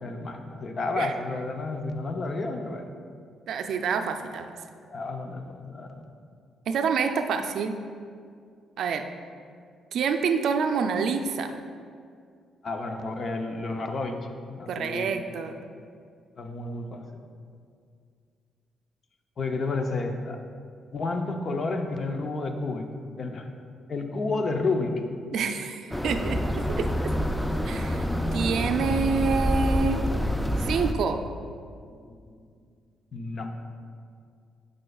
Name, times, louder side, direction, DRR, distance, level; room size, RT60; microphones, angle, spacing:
voice 1, 0.0-2.9 4.9-6.0 12.6-15.2 16.4-17.1 19.4-20.4 20.9-22.9 23.2-23.5 23.9-25.0 31.9-32.0 33.1-33.5, left 3 dB, 45° left, 5 dB, 0.6 m, -31 dB
voice 2, 3.5-4.6 6.7-7.8 8.8-9.1 9.9-11.6 14.7-15.6 25.3-27.1 27.6-28.0 28.3-30.0 30.6-31.2, right 5 dB, 70° right, 7 dB, 0.4 m, -27 dB
sound 1, 25.9-30.9, equal, 5° left, 0.3 m, -27 dB
9.6 x 5.4 x 2.3 m, 2.2 s
cardioid pair, 90°, 0 cm